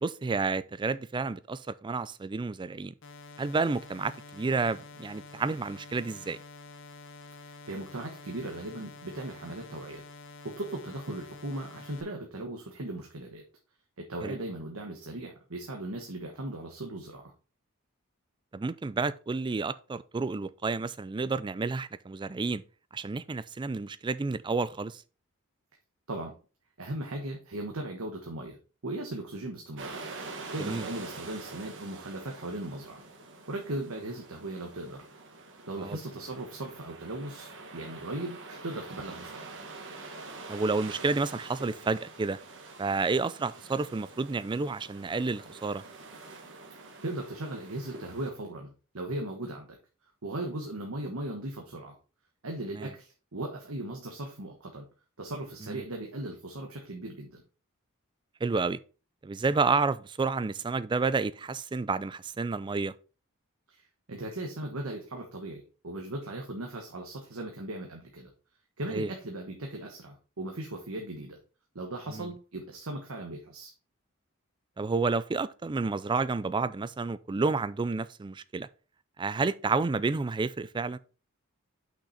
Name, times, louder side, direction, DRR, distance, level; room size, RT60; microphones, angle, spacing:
voice 1, 0.0-2.9 3.4-6.4 14.2-14.4 18.5-22.6 22.9-25.0 30.6-30.9 35.8-36.0 40.5-42.4 42.8-45.8 52.7-52.9 55.6-55.9 58.4-58.8 59.2-62.9 68.9-69.1 72.1-72.3 74.8-78.7 79.2-81.0, right 4 dB, 20° right, 0.3 m, -30 dB
sound 1, 3.0-12.0, left 3 dB, 60° left, 1.0 m, -48 dB
voice 2, 7.4-10.0 10.4-13.4 14.0-17.3 26.1-26.3 26.8-28.6 28.8-30.0 30.5-33.0 33.5-35.0 35.7-39.5 47.0-49.7 50.2-51.9 52.4-54.9 55.2-57.4 63.7-68.3 68.8-71.4 71.7-73.7, right 1 dB, 75° right, 1.3 m, -38 dB
sound 2, 29.8-48.3, right 3 dB, 60° right, 1.5 m, -46 dB
6.0 x 5.8 x 4.1 m
head